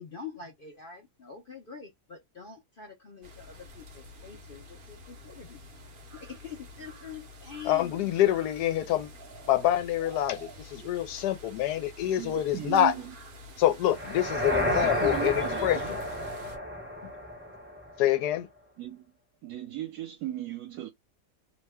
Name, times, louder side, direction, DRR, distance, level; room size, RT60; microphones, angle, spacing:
voice 1, 0.0-5.6 6.1-8.1, left 6 dB, 50° left, 0.7 m, -45 dB
sound 1, 3.2-16.6, equal, 45° right, 0.7 m, -48 dB
voice 2, 7.7-9.1 9.5-12.9 13.6-16.0 18.0-18.5, left 12 dB, 85° left, 1.2 m, -26 dB
voice 3, 12.2-13.1 14.5-15.9 18.8-19.0 19.4-20.9, right 14 dB, 75° right, 1.2 m, -37 dB
sound 2, 13.9-18.0, equal, 10° right, 0.6 m, -31 dB
2.9 x 2.1 x 3.4 m
omnidirectional pair, 1.7 m